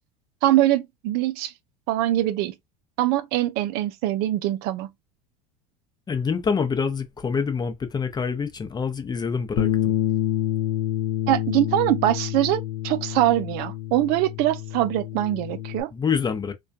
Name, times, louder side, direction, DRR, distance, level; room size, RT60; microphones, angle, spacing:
voice 1, 0.4-1.5 1.9-2.5 3.0-4.9 11.3-15.9, right 14 dB, 55° right, 0.4 m, -23 dB
voice 2, 6.1-10.0 15.9-16.5, left 6 dB, 20° left, 0.6 m, -26 dB
Bass guitar, 9.6-15.8, left 13 dB, 60° left, 0.7 m, -27 dB
2.2 x 2.2 x 2.6 m
hypercardioid pair, 85°, 19 cm